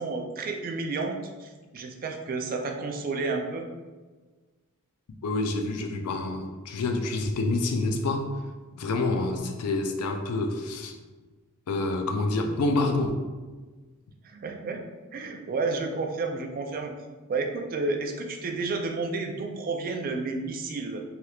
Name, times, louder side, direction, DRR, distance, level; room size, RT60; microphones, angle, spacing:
voice 1, 0.0-3.7 14.2-14.8 15.1-16.9 17.3-21.0, right 3 dB, 40° right, 3 dB, 0.3 m, -31 dB
voice 2, 5.2-8.3 8.7-10.9 11.7-13.2, left 2 dB, 90° left, 4 dB, 0.4 m, -27 dB
3.3 x 2.8 x 2.3 m, 1.3 s
head